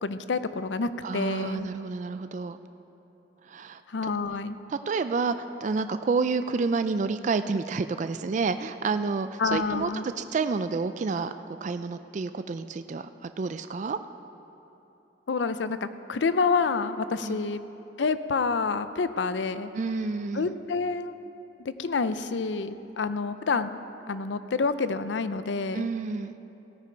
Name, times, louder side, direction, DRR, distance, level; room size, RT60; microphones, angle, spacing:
voice 1, 0.0-1.7 3.9-4.6 9.4-10.0 15.3-17.6 18.0-19.7 20.3-21.2 21.6-23.8 24.1-25.9, left 4 dB, 80° left, 12 dB, 0.5 m, -28 dB
voice 2, 1.0-2.6 3.4-4.1 4.7-14.0 17.2-17.4 19.7-20.5 25.7-26.3, right 4 dB, 40° right, 10 dB, 0.3 m, -29 dB
16.5 x 10.0 x 4.6 m, 3.0 s
head